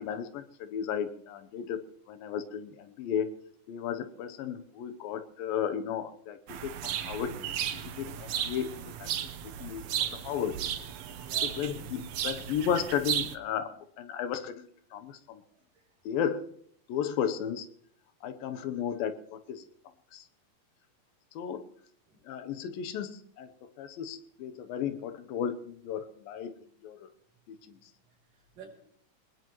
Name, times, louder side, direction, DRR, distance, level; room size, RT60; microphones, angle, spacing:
voice 1, 0.0-1.8 2.1-3.3 3.7-9.1 9.6-10.6 11.4-15.4 16.1-16.5 16.9-17.7 18.2-19.7 20.1-20.3 21.4-21.7 22.2-26.5 26.8-27.1 27.5-27.8, left 8 dB, 80° left, 10 dB, 2.7 m, -34 dB
sound 1, 6.5-13.4, right 10 dB, 85° right, 1.4 m, -35 dB
voice 2, 11.2-11.6 15.5-16.1 22.1-22.2 24.6-24.7 27.3-27.4 27.7-27.8 28.1-28.7, right 6 dB, 70° right, 0 dB, 4.7 m, -53 dB
22.5 x 20.0 x 3.1 m, 0.64 s
omnidirectional pair, 4.1 m